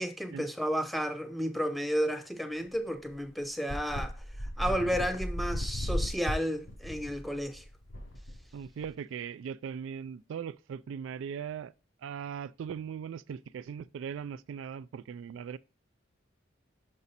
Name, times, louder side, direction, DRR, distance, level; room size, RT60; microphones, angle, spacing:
voice 1, 0.0-4.2 4.6-7.6, equal, ahead, 0.6 m, -32 dB
sound 1, 2.7-2.8 3.1-3.2 3.7-8.9, equal, 85° left, 2.5 m, -35 dB
voice 2, 8.5-11.7 12.0-15.6, right 7 dB, 80° right, 0.3 m, -39 dB
5.9 x 5.4 x 4.1 m
head